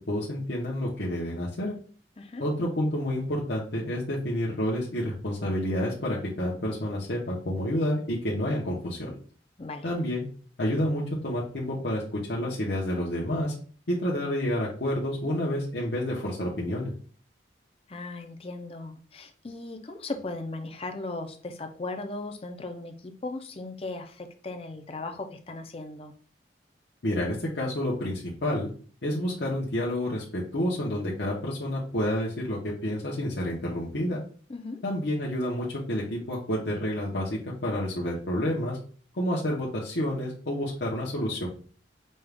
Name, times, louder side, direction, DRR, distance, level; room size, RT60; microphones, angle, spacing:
voice 1, 0.1-1.7 2.4-9.1 9.8-10.2 10.6-13.5 13.9-16.9 27.0-28.7 29.0-34.2 34.8-38.8 39.2-41.5, left 1 dB, 70° left, -5 dB, 1.0 m, -29 dB
voice 2, 17.9-26.1 34.5-34.8, left 2 dB, 30° left, 6 dB, 0.5 m, -37 dB
5.3 x 2.4 x 3.4 m, 0.42 s
head